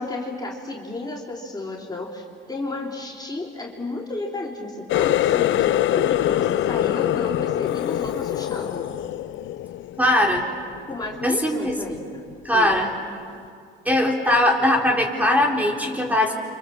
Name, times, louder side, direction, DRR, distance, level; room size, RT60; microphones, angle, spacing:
voice 1, 0.0-8.9 10.9-12.2 12.5-12.8, left 2 dB, 20° left, -2 dB, 3.2 m, -33 dB
Water tap faucet, 4.9-10.4 10.8-11.2 11.7-12.0 12.7-12.8, left 13 dB, 75° left, 0.6 m, -23 dB
voice 2, 10.0-10.4 11.2-11.8 12.4-12.9 13.9-16.3, left 1 dB, 10° right, 0 dB, 4.1 m, -20 dB
29.5 x 26.0 x 7.3 m, 2.3 s
cardioid pair, 90°, 20 cm